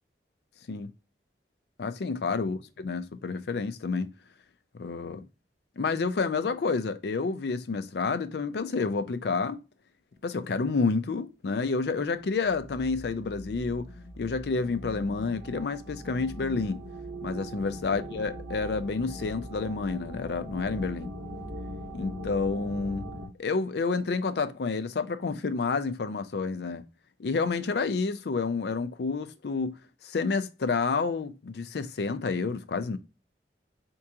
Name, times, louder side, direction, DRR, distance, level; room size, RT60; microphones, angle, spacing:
voice 1, 1.8-4.1 4.7-5.2 5.8-9.6 10.2-13.9 14.2-16.8 17.2-21.1 21.9-23.1 23.4-26.8 27.2-29.7 30.0-33.0, left 4 dB, 65° left, 0.4 m, -29 dB
sound 1, 12.4-23.3, equal, 70° right, 1.3 m, -41 dB
4.5 x 2.9 x 2.3 m
head